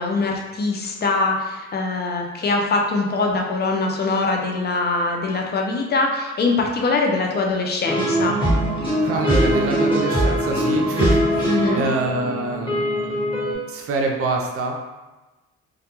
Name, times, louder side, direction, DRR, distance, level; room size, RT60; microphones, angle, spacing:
voice 1, 0.0-8.4 11.4-11.8, left 3 dB, 35° left, 1 dB, 0.5 m, -22 dB
sound 1, 7.8-13.5, equal, 15° left, 1.2 m, -21 dB
voice 2, 9.0-12.8 13.7-14.8, right 3 dB, 50° right, 1 dB, 0.5 m, -25 dB
2.3 x 2.1 x 2.9 m, 1.1 s
cardioid pair, 90°, 30 cm